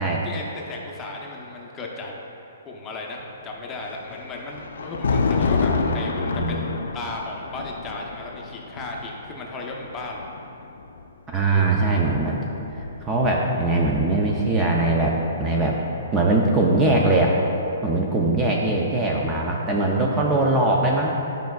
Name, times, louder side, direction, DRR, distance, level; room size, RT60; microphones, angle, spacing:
voice 1, 0.0-2.2 2.6-10.3, left 2 dB, 20° left, -1 dB, 0.8 m, -35 dB
Thunder, 3.8-11.0 12.1-13.8, left 4 dB, 80° left, 0.4 m, -28 dB
voice 2, 5.8-6.7 11.3-12.4 12.7-15.8 16.1-17.4 17.8-21.1, right 2 dB, 15° right, -2 dB, 0.5 m, -21 dB
9.1 x 5.2 x 2.3 m, 3.0 s
hypercardioid pair, 145°, 0 cm